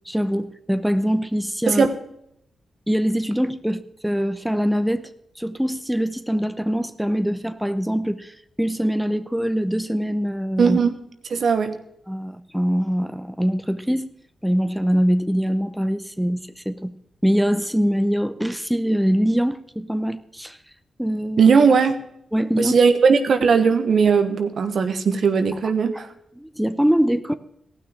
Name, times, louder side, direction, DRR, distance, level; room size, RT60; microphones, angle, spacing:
voice 1, 0.1-1.9 2.9-10.8 12.1-14.1 14.4-16.9 17.2-20.6 21.0-21.5 22.3-22.8 25.9-26.0 26.4-27.4, equal, 5° right, 11 dB, 0.8 m, -23 dB
voice 2, 10.6-11.0 11.3-11.8 21.4-22.0 22.6-26.1, right 5 dB, 70° right, 9 dB, 1.1 m, -18 dB
15.5 x 6.2 x 8.4 m, 0.73 s
supercardioid pair, 40°, 0 cm